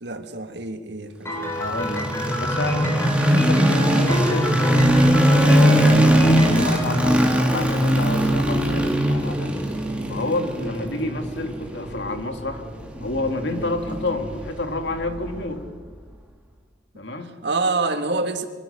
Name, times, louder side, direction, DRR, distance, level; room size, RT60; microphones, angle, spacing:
voice 1, 0.0-1.5 10.6-10.7 17.4-18.4, right 3 dB, 65° right, 7 dB, 1.9 m, -26 dB
Piano, 1.3-8.1, left 1 dB, 15° left, 5.1 m, -31 dB
sound 1, 1.4-15.6, equal, 5° right, 3.1 m, -21 dB
voice 2, 1.5-4.6 5.4-9.5 10.1-12.6 13.0-15.6 17.0-17.4, left 2 dB, 65° left, 6 dB, 2.3 m, -29 dB
23.5 x 20.5 x 6.8 m, 1.5 s
head